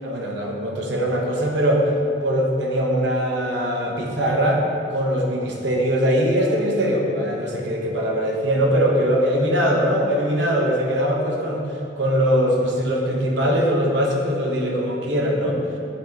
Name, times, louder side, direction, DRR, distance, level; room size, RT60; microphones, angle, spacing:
voice 1, 0.0-1.9 2.2-4.6 4.9-11.6 12.0-15.6, equal, 65° right, 0 dB, 0.9 m, -21 dB
8.1 x 3.4 x 3.9 m, 2.7 s
head